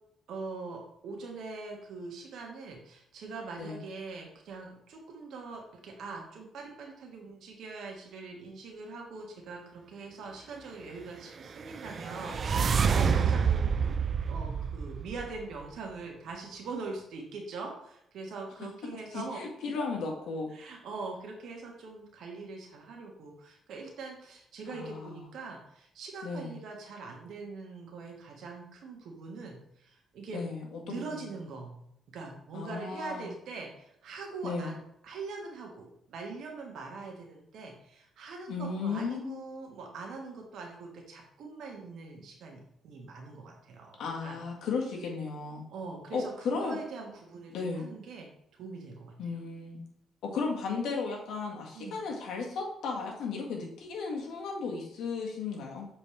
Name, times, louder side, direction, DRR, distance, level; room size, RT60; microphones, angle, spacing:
voice 1, 0.3-14.0 14.3-19.7 20.5-30.4 30.8-31.8 32.1-34.8 35.0-44.4 45.7-47.5 47.8-48.3 48.6-49.2 51.7-52.0, right 3 dB, 75° right, 1 dB, 1.7 m, -42 dB
sound 1, 11.5-15.7, right 6 dB, 45° right, 0.4 m, -28 dB
voice 2, 12.9-13.3 18.9-20.5 24.7-25.3 26.2-26.6 30.3-31.0 32.5-33.3 34.4-34.7 38.5-39.4 44.0-45.6 46.1-46.8 47.5-47.9 49.2-49.8 50.2-55.9, left 4 dB, 80° left, 0 dB, 1.8 m, -35 dB
7.3 x 4.3 x 3.4 m, 0.74 s
cardioid pair, 90°, 0 cm